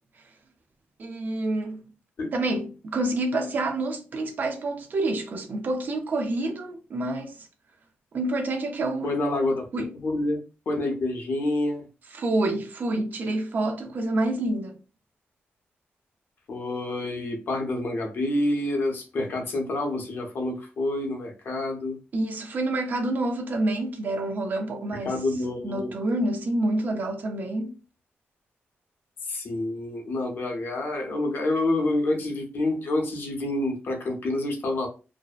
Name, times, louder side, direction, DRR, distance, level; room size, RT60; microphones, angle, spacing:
voice 1, 1.0-1.8 2.3-7.5 8.1-9.1 9.7-10.0 12.1-14.8 22.1-25.2 25.6-27.7, right 2 dB, 45° right, 0.5 m, -28 dB
voice 2, 9.0-9.7 9.9-10.4 10.7-11.8 16.5-22.0 25.0-25.9 29.3-34.9, left 2 dB, 55° left, 0.7 m, -28 dB
2.6 x 2.0 x 2.3 m
wide cardioid pair, 135°, 4 cm